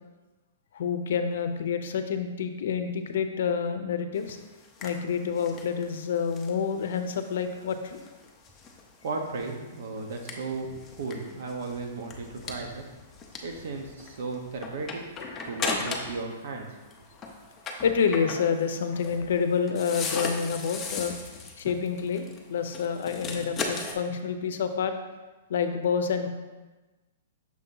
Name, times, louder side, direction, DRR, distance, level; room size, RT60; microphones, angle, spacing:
voice 1, 0.7-4.4 4.8-8.0 15.3-15.4 17.8-21.2 21.6-24.9 25.5-26.3, left 6 dB, 65° left, 8 dB, 0.6 m, -28 dB
sound 1, 4.1-16.3 16.6-23.9, left 4 dB, 15° left, 0.5 m, -38 dB
voice 2, 9.0-10.7 11.0-12.8 13.4-15.0 15.5-16.7, right 3 dB, 60° right, 3 dB, 1.0 m, -35 dB
6.3 x 2.8 x 5.4 m, 1.2 s
hypercardioid pair, 165°, 0 cm